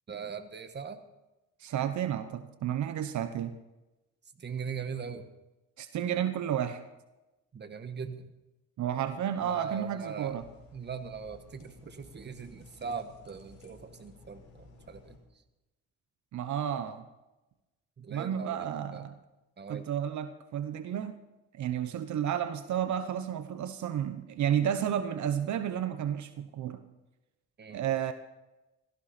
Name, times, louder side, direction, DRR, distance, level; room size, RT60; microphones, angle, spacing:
voice 1, 0.1-1.0 4.4-5.2 7.5-8.3 9.4-10.4 10.7-15.2 18.0-18.7 18.9-19.0 19.6-19.9 27.6-27.8, right 6 dB, 35° right, 9 dB, 1.5 m, -40 dB
voice 2, 1.6-3.5 5.8-6.8 8.8-10.4 16.3-17.0 18.1-19.2 19.7-21.1 21.5-26.8 27.7-28.1, right 9 dB, 70° right, 10 dB, 1.1 m, -32 dB
sound 1, 10.2-15.2, left 2 dB, 65° left, 4.7 m, -55 dB
17.0 x 15.5 x 4.4 m, 1.0 s
cardioid pair, 90°, 30 cm